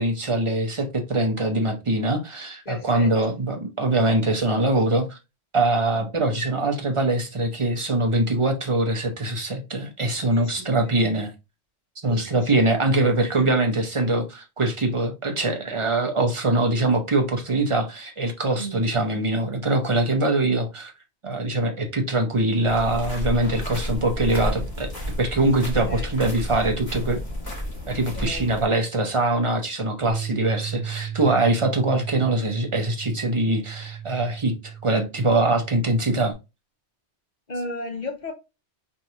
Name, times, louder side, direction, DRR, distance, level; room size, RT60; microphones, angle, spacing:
voice 1, 0.0-5.2 5.5-11.3 12.0-20.9 21.2-24.9 25.2-27.2 27.9-36.3, right 2 dB, 30° right, 0.6 m, -23 dB
voice 2, 2.6-3.4 4.0-4.1 10.3-11.0 12.1-12.6 13.3-13.6 18.6-18.8 25.8-26.3 28.1-28.4 37.5-38.3, left 1 dB, 40° left, 1.1 m, -35 dB
sound 1, 22.7-28.7, equal, 20° left, 1.8 m, -31 dB
Bass guitar, 30.1-36.3, right 8 dB, 60° right, 0.8 m, -35 dB
4.5 x 2.7 x 2.7 m
omnidirectional pair, 1.2 m